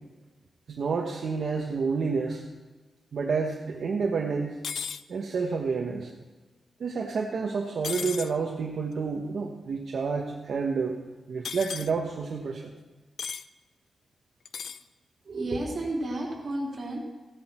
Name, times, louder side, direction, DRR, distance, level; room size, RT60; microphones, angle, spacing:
voice 1, 0.7-2.4 3.1-4.6 5.1-6.1 6.8-11.0 11.3-12.7, right 5 dB, 60° right, -1 dB, 1.3 m, -29 dB
sound 1, 4.6-5.0 7.8-8.3 11.4-11.9 13.2-13.4 14.4-14.8, left 6 dB, 65° left, 0.4 m, -35 dB
voice 2, 15.3-17.0, right 1 dB, 45° right, -3 dB, 3.5 m, -31 dB
16.0 x 10.5 x 4.5 m, 1.2 s
wide cardioid pair, 170°, 0 cm